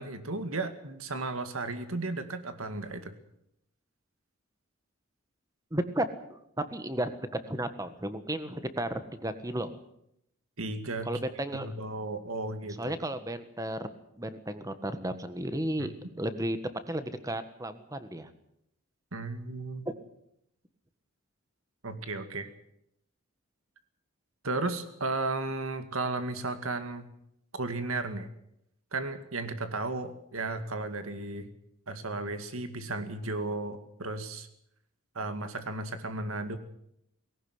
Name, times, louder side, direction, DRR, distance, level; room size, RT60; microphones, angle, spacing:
voice 1, 0.0-3.1 10.6-11.1 11.5-12.9 15.8-15.9 19.1-19.8 21.8-22.5 24.4-27.1 27.5-28.3 28.9-31.5 31.9-34.5 35.2-36.6, right 2 dB, 90° right, 9 dB, 2.2 m, -34 dB
voice 2, 5.7-7.1 7.5-9.8 11.0-11.7 12.8-13.9 14.2-16.6 16.9-18.3 19.8-19.9, right 1 dB, 15° right, 10 dB, 1.5 m, -33 dB
19.0 x 17.5 x 8.0 m, 0.76 s
head